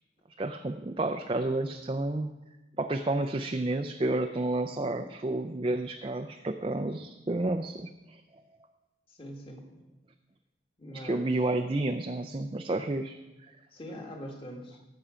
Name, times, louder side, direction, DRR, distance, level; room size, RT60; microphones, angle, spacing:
voice 1, 0.4-2.4 2.8-8.4 10.9-13.2, right 2 dB, 25° right, 5 dB, 0.4 m, -31 dB
voice 2, 9.1-9.8 10.8-11.3 13.7-14.8, equal, 30° left, 1 dB, 1.7 m, -42 dB
17.0 x 6.9 x 5.0 m, 1.0 s
head